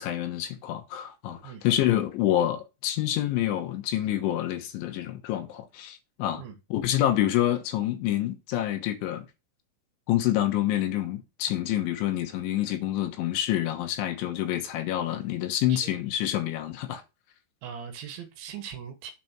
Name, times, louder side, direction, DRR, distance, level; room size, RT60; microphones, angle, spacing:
voice 1, 0.0-6.4 6.7-9.3 10.1-17.0, left 12 dB, 75° left, 3.4 m, -27 dB
voice 2, 17.6-19.1, right 8 dB, 75° right, 3.4 m, -40 dB
8.0 x 4.2 x 5.9 m
omnidirectional pair, 5.8 m